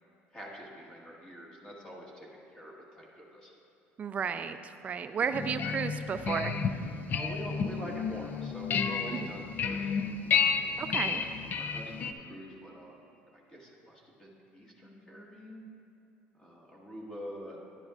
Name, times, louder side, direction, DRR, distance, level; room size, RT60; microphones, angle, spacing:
voice 1, 0.3-3.5 7.1-10.0 10.4-13.0 13.3-15.7 16.4-17.6, equal, 15° left, -3 dB, 1.4 m, -46 dB
voice 2, 4.0-4.6 4.8-6.5 9.1-9.3 10.8-11.2, right 6 dB, 30° right, 10 dB, 0.4 m, -33 dB
sound 1, 5.3-12.1, left 6 dB, 40° left, 0.4 m, -31 dB
10.5 x 10.5 x 2.4 m, 2.9 s
cardioid pair, 120°, 5 cm